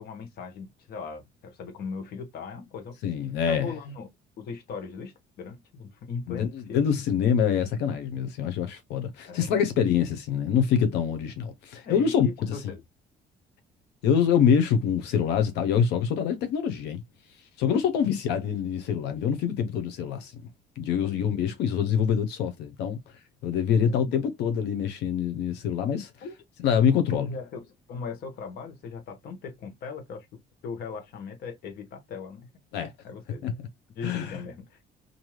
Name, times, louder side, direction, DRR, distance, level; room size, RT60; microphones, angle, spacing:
voice 1, 0.0-3.0 3.4-4.1 4.4-6.9 9.3-9.5 11.8-12.8 21.0-21.2 23.7-24.2 26.2-26.3 27.1-30.3 30.6-32.5 33.0-33.5 34.0-34.8, left 5 dB, 65° left, 1.0 m, -39 dB
voice 2, 3.0-3.7 6.3-12.5 14.0-17.0 17.6-20.4 20.8-23.0 23.4-26.1 26.6-27.3 32.7-32.9 33.4-33.5 34.0-34.4, left 8 dB, 90° left, 0.7 m, -25 dB
2.6 x 2.2 x 3.1 m
cardioid pair, 110°, 17 cm